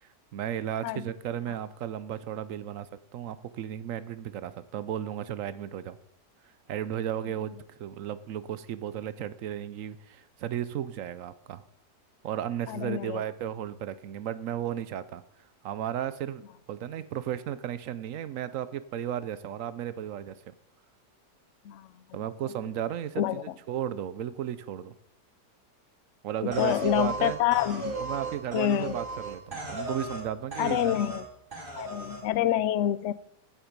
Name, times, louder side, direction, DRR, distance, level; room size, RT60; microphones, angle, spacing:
voice 1, 0.0-6.0 6.7-11.6 12.2-15.2 15.6-16.4 16.7-20.5 22.1-24.9 26.2-27.4 28.0-31.0, right 10 dB, 65° right, 15 dB, 0.9 m, -34 dB
voice 2, 12.7-13.2 21.7-21.9 23.2-23.4 26.4-28.0 28.5-28.9 30.6-31.2 31.8-33.1, left 12 dB, 70° left, 17 dB, 0.7 m, -27 dB
sound 1, 26.5-30.3 30.5-31.2 31.5-32.2, right 2 dB, 30° right, 2.0 m, -36 dB
15.5 x 7.4 x 5.2 m, 0.78 s
omnidirectional pair, 1.8 m